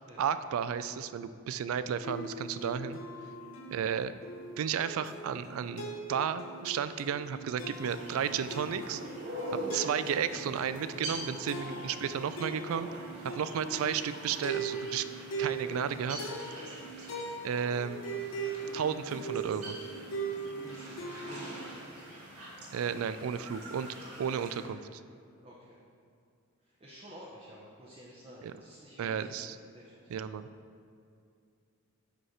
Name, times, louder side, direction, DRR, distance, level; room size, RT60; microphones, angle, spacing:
voice 1, 0.2-3.0 3.7-4.1 4.6-9.0 9.7-12.9 13.2-15.1 15.4-16.2 17.4-18.0 18.7-19.8 22.7-25.0 28.4-28.5 29.0-29.6 30.1-30.5, right 7 dB, 75° right, 14 dB, 0.3 m, -33 dB
sound 1, 2.0-21.7, right 4 dB, 65° left, 0.9 m, -40 dB
sound 2, 7.6-24.7, right 1 dB, 90° right, 1.7 m, -44 dB
voice 2, 20.6-21.7 24.4-24.6 25.4-25.8 26.6-29.3 29.7-30.1, equal, 25° right, -5 dB, 0.6 m, -52 dB
5.1 x 4.8 x 5.8 m, 2.4 s
head